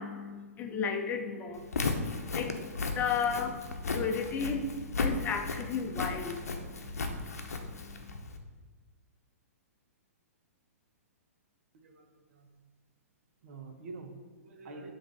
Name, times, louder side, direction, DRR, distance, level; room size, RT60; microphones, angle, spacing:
voice 1, 0.0-8.2, left 6 dB, 20° left, 5 dB, 0.7 m, -35 dB
Walk footsteps, 1.6-8.4, left 3 dB, 80° left, 0.7 m, -35 dB
voice 2, 11.7-12.6 13.4-14.9, right 3 dB, 60° right, 4 dB, 1.1 m, -47 dB
7.6 x 3.4 x 4.1 m, 1.4 s
hypercardioid pair, 120°, 8 cm